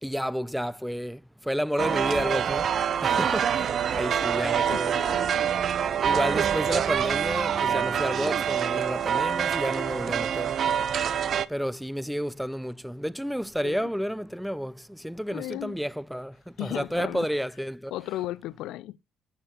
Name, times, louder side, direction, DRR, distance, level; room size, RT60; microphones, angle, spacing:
voice 1, 0.0-5.0 6.0-10.6 11.5-17.9, equal, ahead, 0.5 m, -31 dB
sound 1, 1.8-11.4, right 8 dB, 60° right, 0.6 m, -26 dB
voice 2, 4.7-5.5 13.6-13.8 15.3-15.8 16.6-17.3 17.9-19.0, left 15 dB, 75° left, 0.4 m, -35 dB
11.5 x 6.6 x 3.0 m
hypercardioid pair, 60°, 0 cm